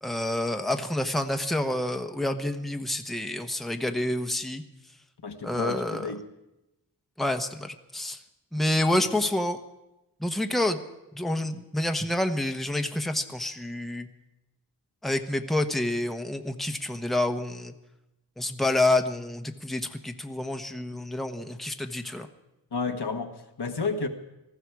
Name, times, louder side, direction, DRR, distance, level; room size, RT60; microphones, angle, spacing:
voice 1, 0.0-4.6 5.4-6.1 7.2-8.2 8.5-9.6 10.2-10.8 11.1-14.1 15.0-17.7 18.4-22.3, left 1 dB, ahead, 6 dB, 1.1 m, -28 dB
voice 2, 5.2-6.3 22.7-24.1, left 4 dB, 70° left, 5 dB, 1.4 m, -31 dB
19.0 x 14.5 x 4.8 m, 0.95 s
wide cardioid pair, 60°, 41 cm